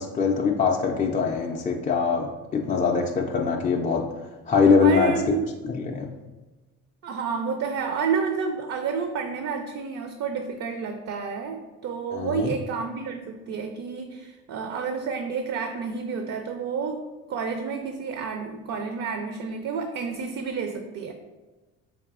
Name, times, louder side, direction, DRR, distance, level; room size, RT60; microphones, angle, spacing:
voice 1, 0.0-4.1 4.5-5.1 5.6-6.1 12.1-12.5, left 5 dB, 25° left, 0 dB, 0.4 m, -23 dB
voice 2, 4.8-5.5 7.0-21.1, right 5 dB, 50° right, 6 dB, 0.5 m, -30 dB
4.8 x 2.7 x 2.4 m, 1.2 s
supercardioid pair, 75°, 33 cm